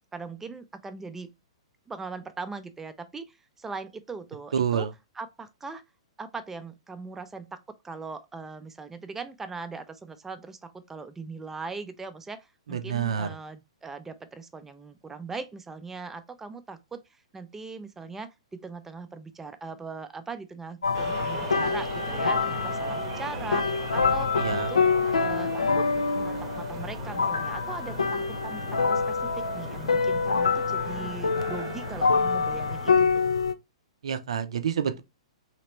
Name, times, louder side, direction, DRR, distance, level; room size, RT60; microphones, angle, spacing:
voice 1, 0.1-1.3 1.9-4.9 5.1-5.8 6.2-25.9 26.2-33.3, right 4 dB, 10° right, 0.4 m, -40 dB
voice 2, 4.5-4.9 12.7-13.3 24.4-24.7 34.0-35.0, right 7 dB, 65° right, 0.5 m, -28 dB
sound 1, 20.8-33.5, left 4 dB, 80° left, 0.4 m, -26 dB
sound 2, 20.9-33.0, right 7 dB, 40° right, 0.8 m, -40 dB
3.2 x 2.9 x 2.9 m
figure-of-eight pair, 115°, 3 cm